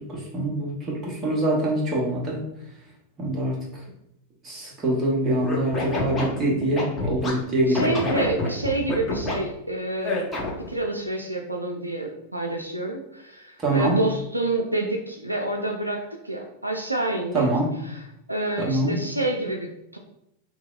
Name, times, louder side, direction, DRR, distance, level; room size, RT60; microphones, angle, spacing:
voice 1, 0.1-2.4 3.2-3.5 4.4-7.9 13.6-14.0 17.3-17.7 18.6-19.0, right 1 dB, 25° right, -3 dB, 1.0 m, -24 dB
Scratching (performance technique), 5.4-7.3 7.7-9.3 10.0-10.7, left 2 dB, 20° left, 0.8 m, -27 dB
voice 2, 7.7-10.3 10.7-17.5 17.8-18.0 18.3-20.0, right 2 dB, 85° right, 2 dB, 0.3 m, -28 dB
2.9 x 2.6 x 2.4 m, 0.79 s
figure-of-eight pair, 90°, 0 cm